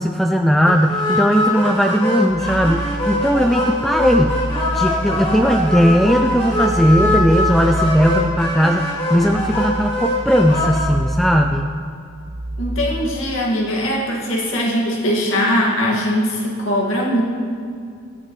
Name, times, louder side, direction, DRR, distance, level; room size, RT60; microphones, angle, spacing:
voice 1, 0.0-4.4 4.7-11.7, equal, ahead, 3 dB, 0.3 m, -17 dB
sound 1, 0.7-10.8, left 1 dB, 30° left, 2.8 m, -22 dB
sound 2, 2.3-13.2, right 1 dB, 85° right, 1.2 m, -28 dB
voice 2, 12.6-17.2, equal, 75° left, -3 dB, 2.1 m, -20 dB
23.0 x 7.6 x 3.2 m, 2.3 s
head